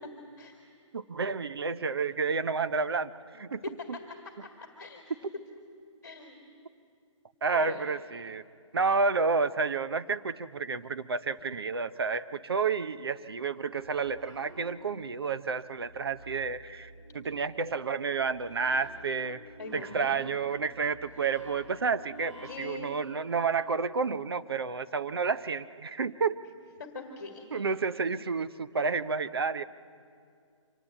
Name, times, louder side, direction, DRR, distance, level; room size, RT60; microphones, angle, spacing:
voice 1, 0.9-3.6 3.9-4.0 7.4-8.4 8.7-19.4 19.7-26.4 27.5-29.6, right 4 dB, 50° right, 13 dB, 0.7 m, -30 dB
voice 2, 6.0-6.4 7.5-7.8 19.6-20.1 22.4-22.9 26.8-27.7, left 4 dB, 35° left, 3 dB, 1.9 m, -42 dB
sound 1, 13.4-15.2 15.5-23.0, right 1 dB, 65° right, 6.6 m, -51 dB
25.0 x 18.0 x 8.9 m, 2.3 s
hypercardioid pair, 180°, 16 cm